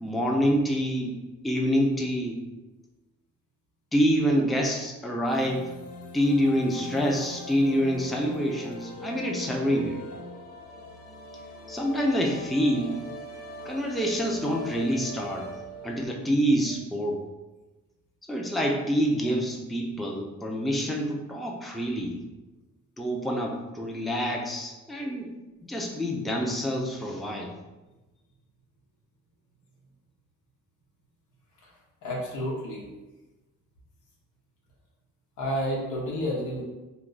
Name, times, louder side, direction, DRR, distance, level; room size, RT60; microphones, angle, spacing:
voice 1, 0.0-1.2 1.4-2.4 3.9-5.7 6.1-10.0 11.7-13.0 13.6-15.5 15.8-17.2 18.3-22.2 23.0-25.4 25.6-27.5, equal, ahead, 0 dB, 0.4 m, -26 dB
sound 1, 5.3-16.1, left 1 dB, 55° left, 0.6 m, -41 dB
voice 2, 32.0-32.8 35.4-36.6, equal, 85° left, -3 dB, 1.0 m, -30 dB
2.7 x 2.3 x 3.9 m, 1.1 s
cardioid pair, 90°, 30 cm